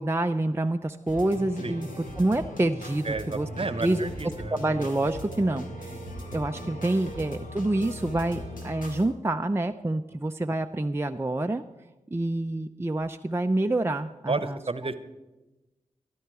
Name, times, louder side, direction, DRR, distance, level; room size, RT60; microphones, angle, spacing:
voice 1, 0.0-1.9 2.2-3.5 3.8-4.1 4.5-6.0 6.3-11.6 12.1-14.6, right 2 dB, 20° right, 5 dB, 0.5 m, -27 dB
sound 1, 1.1-9.1, equal, 85° left, 2.0 m, -39 dB
voice 2, 3.0-4.6 14.3-15.0, right 3 dB, 45° right, 12 dB, 1.0 m, -31 dB
13.5 x 12.0 x 4.8 m, 1.1 s
cardioid pair, 40°, 14 cm